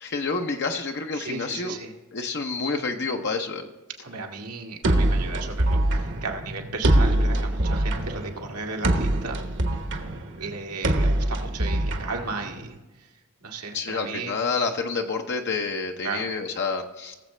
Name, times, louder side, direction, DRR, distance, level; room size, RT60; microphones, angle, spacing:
voice 1, 0.0-1.8 2.1-3.7 13.7-17.1, left 4 dB, 50° left, 3 dB, 0.8 m, -28 dB
voice 2, 1.1-1.9 4.0-9.4 10.4-13.1 13.4-14.4 16.0-16.3, right 4 dB, 90° right, 2 dB, 1.8 m, -35 dB
sound 1, 4.8-12.8, right 1 dB, 55° right, 1.1 m, -24 dB
19.0 x 7.3 x 3.3 m, 1.1 s
head